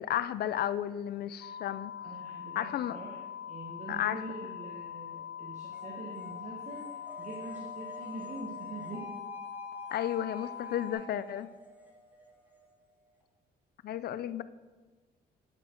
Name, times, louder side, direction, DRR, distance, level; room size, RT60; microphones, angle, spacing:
voice 1, 0.0-1.9 2.6-3.0 3.9-4.2 9.9-11.5 13.8-14.4, left 11 dB, 65° left, 15 dB, 0.5 m, -33 dB
sound 1, 1.4-10.9, left 9 dB, 90° left, 1.1 m, -43 dB
voice 2, 2.0-3.2 3.5-9.1, right 2 dB, 45° right, -2 dB, 1.6 m, -44 dB
sound 2, 5.7-13.2, right 1 dB, 10° right, 2.1 m, -50 dB
9.6 x 6.8 x 4.5 m, 1.3 s
cardioid pair, 75°, 17 cm